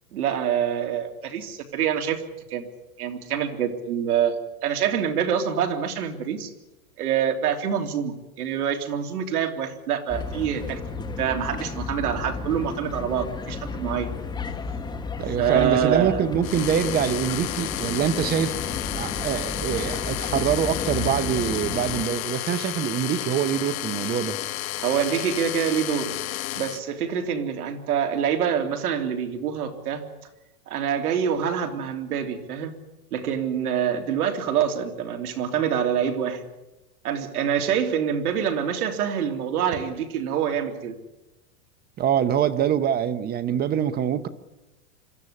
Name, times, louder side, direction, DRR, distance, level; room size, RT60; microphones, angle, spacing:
voice 1, 0.1-2.2 2.5-2.7 3.0-4.3 4.6-6.5 7.0-10.8 11.2-14.1 15.4-16.2 24.8-26.1 26.6-30.0 30.7-32.7 33.1-36.4 37.0-41.0, right 8 dB, 85° right, 3.2 m, -26 dB
sound 1, 10.1-22.0, left 4 dB, 10° left, 1.3 m, -33 dB
voice 2, 15.2-18.6 18.9-24.4 42.0-44.3, right 9 dB, 20° right, 0.8 m, -24 dB
sound 2, 16.4-26.8, left 15 dB, 65° left, 1.2 m, -32 dB
26.0 x 13.5 x 9.9 m
supercardioid pair, 145°, 44 cm